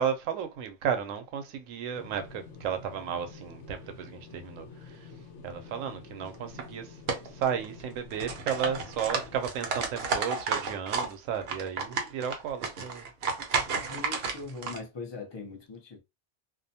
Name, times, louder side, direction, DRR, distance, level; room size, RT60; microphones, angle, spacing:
voice 1, 0.0-5.1 5.4-6.9 7.3-13.1, right 8 dB, 85° right, 1.0 m, -33 dB
sound 1, 1.9-9.4, left 4 dB, 70° left, 0.9 m, -48 dB
sound 2, 6.3-6.6 7.1-7.8 8.1-11.1 11.4-14.8, right 5 dB, 60° right, 0.8 m, -32 dB
voice 2, 13.8-16.0, left 4 dB, 30° left, 0.5 m, -41 dB
2.5 x 2.1 x 2.7 m
omnidirectional pair, 1.3 m